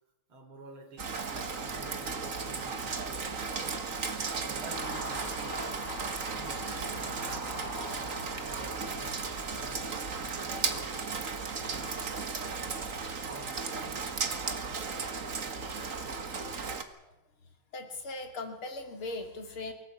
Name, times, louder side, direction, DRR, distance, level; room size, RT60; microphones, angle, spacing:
voice 1, 0.3-4.0 4.4-5.8 6.2-8.0 8.4-11.3 11.7-12.0 13.3-14.0, right 2 dB, 75° right, 5 dB, 4.3 m, -50 dB
Rain, 1.0-16.8, right 4 dB, 40° right, 1.8 m, -35 dB
Car passing by / Accelerating revving vroom, 4.7-11.3, equal, 25° left, 7.9 m, -44 dB
voice 2, 17.7-19.7, left 2 dB, 75° left, 4 dB, 3.6 m, -39 dB
24.0 x 16.5 x 8.4 m, 0.95 s
omnidirectional pair, 2.3 m